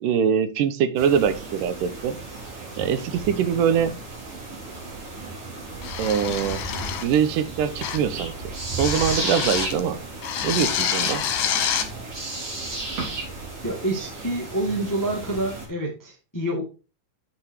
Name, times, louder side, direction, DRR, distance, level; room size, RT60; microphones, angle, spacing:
voice 1, 0.0-2.2 2.8-4.0 6.0-6.6 7.0-10.0 10.4-11.3, right 8 dB, 80° right, 2.4 m, -23 dB
sound 1, 1.0-15.7, right 2 dB, 45° right, 4.4 m, -34 dB
sound 2, 5.8-7.2 7.8-8.1 8.8-9.8 10.2-11.9, left 8 dB, 70° left, 2.6 m, -27 dB
voice 2, 13.6-16.6, right 1 dB, 10° left, 1.4 m, -27 dB
8.1 x 6.0 x 4.6 m
omnidirectional pair, 3.9 m